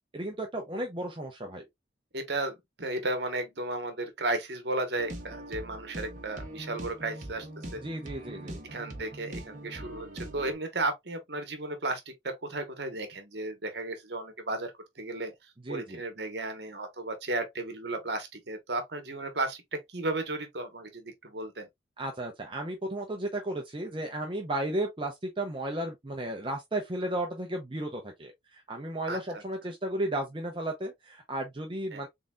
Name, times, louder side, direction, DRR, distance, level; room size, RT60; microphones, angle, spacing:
voice 1, 0.1-1.7 7.8-8.6 15.6-16.0 22.0-32.1, right 1 dB, 25° right, 0.7 m, -34 dB
voice 2, 2.1-7.5 7.7-7.8 8.7-15.3 15.7-21.7 29.1-29.4 31.9-32.0, right 2 dB, 60° right, 1.2 m, -34 dB
sound 1, 5.0-10.5, right 1 dB, 40° right, 1.1 m, -42 dB
3.9 x 3.9 x 2.3 m
head